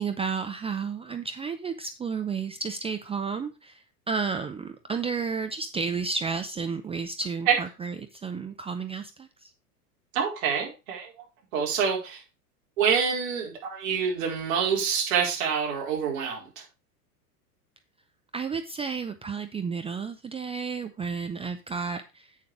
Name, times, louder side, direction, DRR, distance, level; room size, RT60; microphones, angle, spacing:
voice 1, 0.0-9.5 18.3-22.4, right 5 dB, 15° right, 8 dB, 0.6 m, -32 dB
voice 2, 10.1-11.1 11.5-12.2 12.8-16.6, right 7 dB, 60° right, -1 dB, 4.8 m, -26 dB
8.4 x 6.9 x 4.9 m, 0.30 s
hypercardioid pair, 95°, 46 cm